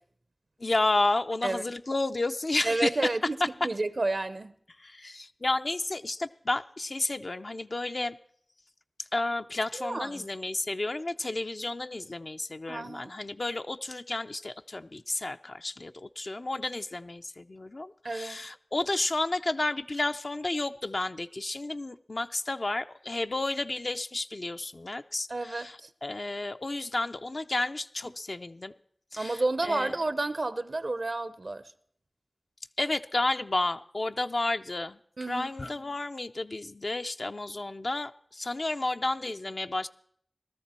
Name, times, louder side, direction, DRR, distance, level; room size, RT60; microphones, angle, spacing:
voice 1, 0.6-3.0 4.8-8.2 9.1-28.7 29.1-29.9 32.8-39.9, left 2 dB, 65° left, 0.5 m, -31 dB
voice 2, 2.6-3.4 3.6-4.5 9.8-10.3 12.7-13.1 18.0-18.4 25.3-25.9 29.2-31.6 35.2-35.5, right 2 dB, 70° right, 0.7 m, -30 dB
18.0 x 13.0 x 4.3 m
wide cardioid pair, 40°, 0 cm